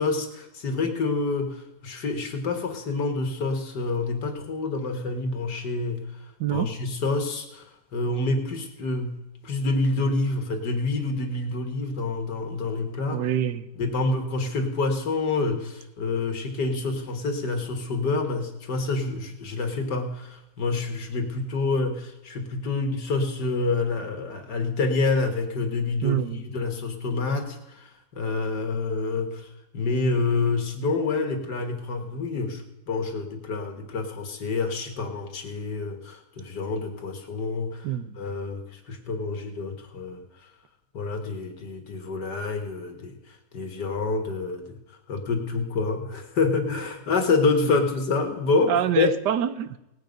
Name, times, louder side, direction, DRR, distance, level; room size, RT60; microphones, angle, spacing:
voice 1, 0.0-6.0 6.5-7.7 7.9-9.2 9.4-13.2 13.8-29.5 29.7-37.9 38.2-40.2 40.9-43.1 43.5-44.8 45.1-49.1, left 3 dB, 80° left, 5 dB, 2.3 m, -27 dB
voice 2, 6.4-6.7 13.1-13.7 26.0-26.4 37.8-38.2 47.7-47.8 48.7-49.8, right 10 dB, 90° right, 13 dB, 1.3 m, -26 dB
18.5 x 8.4 x 5.2 m, 0.91 s
omnidirectional pair, 1.8 m